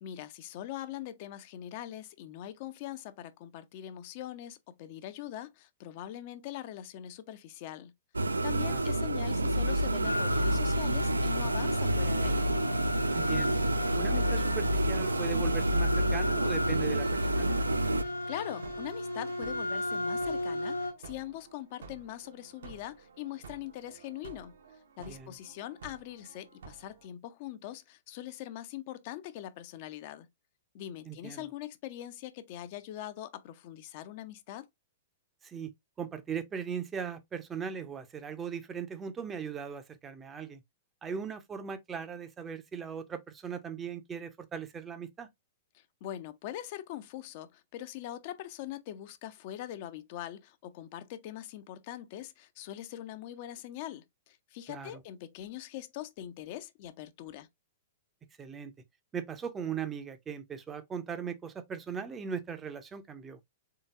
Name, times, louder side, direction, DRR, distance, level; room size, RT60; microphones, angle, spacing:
voice 1, 0.0-7.9 8.2-12.5 18.0-24.5 25.0-30.3 30.7-34.7 45.7-57.5, left 12 dB, 40° left, 0.4 m, -42 dB
sound 1, 8.1-18.0, right 1 dB, 75° right, 0.3 m, -28 dB
sound 2, 10.0-20.9, left 2 dB, 90° left, 1.2 m, -35 dB
voice 2, 13.1-13.6 13.9-17.7 25.1-25.3 31.1-31.4 35.4-35.7 36.0-40.6 41.0-45.3 54.7-55.0 58.4-58.7 59.1-63.4, right 7 dB, 15° right, 0.5 m, -39 dB
sound 3, 14.6-27.1, right 5 dB, 60° right, 0.7 m, -52 dB
3.8 x 3.7 x 2.4 m
figure-of-eight pair, 105°, 0 cm